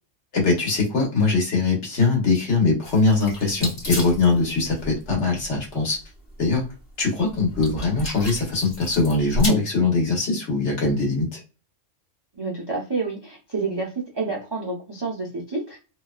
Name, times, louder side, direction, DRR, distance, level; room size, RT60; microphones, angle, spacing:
voice 1, 0.3-6.0 6.4-6.6 7.0-11.4, left 3 dB, 60° left, -1 dB, 1.3 m, -21 dB
sound 1, 2.8-9.5, equal, 40° left, 1.2 m, -33 dB
voice 2, 12.3-15.8, right 3 dB, 40° right, -1 dB, 0.3 m, -29 dB
2.7 x 2.2 x 2.2 m, 0.34 s
omnidirectional pair, 1.3 m